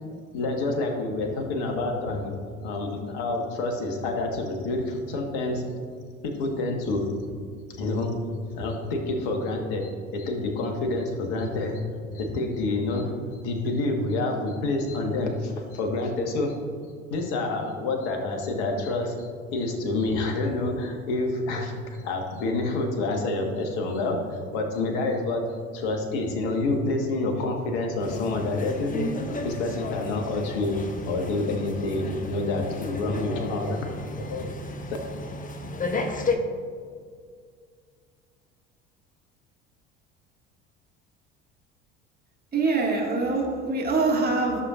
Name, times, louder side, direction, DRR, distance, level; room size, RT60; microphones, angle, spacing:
voice 1, 0.3-2.3 2.6-5.6 6.2-7.1 7.8-8.1 8.6-11.8 12.1-13.1 13.4-16.6 17.1-25.4 25.7-29.1 29.4-30.8 31.1-33.8 34.2-34.5, left 2 dB, 65° left, 2 dB, 1.5 m, -28 dB
sound 1, 28.0-36.4, left 3 dB, 25° left, 0.9 m, -33 dB
voice 2, 42.5-44.7, right 3 dB, 25° right, -1 dB, 1.9 m, -24 dB
13.5 x 6.9 x 2.5 m, 2.1 s
figure-of-eight pair, 65°, 35 cm